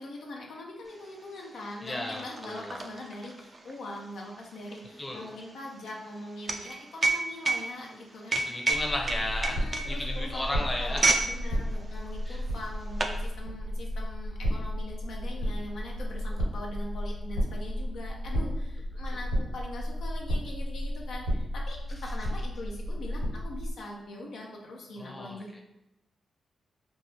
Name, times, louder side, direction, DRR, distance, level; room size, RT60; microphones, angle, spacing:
voice 1, 0.0-8.7 9.4-25.6, left 1 dB, 75° left, -1 dB, 0.5 m, -42 dB
sound 1, 1.0-1.1 1.4-11.3 11.6-11.9 12.6-13.2, right 3 dB, 45° right, 0.4 m, -30 dB
voice 2, 1.8-2.8 5.0-5.3 8.3-11.0 12.3-12.4 25.0-25.4, left 1 dB, 20° left, 0 dB, 0.7 m, -34 dB
sound 2, 8.7-23.7, equal, 80° right, 1.3 m, -33 dB
3.3 x 2.0 x 2.7 m, 0.91 s
supercardioid pair, 50°, 0 cm